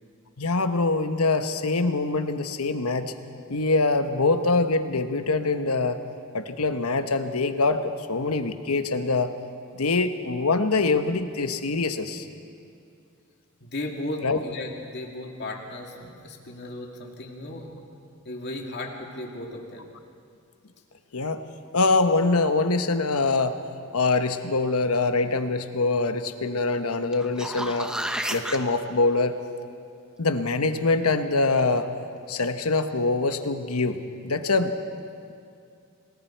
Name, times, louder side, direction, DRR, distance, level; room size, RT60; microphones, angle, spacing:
voice 1, 0.4-3.1 3.5-6.0 6.3-9.3 9.7-12.3 14.2-14.4 21.1-21.4 21.7-23.6 23.9-27.9 28.3-29.4 30.2-31.9 32.3-34.7, left 3 dB, 85° left, 8 dB, 1.1 m, -24 dB
voice 2, 13.6-17.8 18.2-19.9, left 1 dB, 50° left, 0 dB, 2.6 m, -35 dB
sound 1, 27.1-28.6 33.4-33.5, equal, 5° right, 0.9 m, -31 dB
29.0 x 19.5 x 4.6 m, 2.5 s
head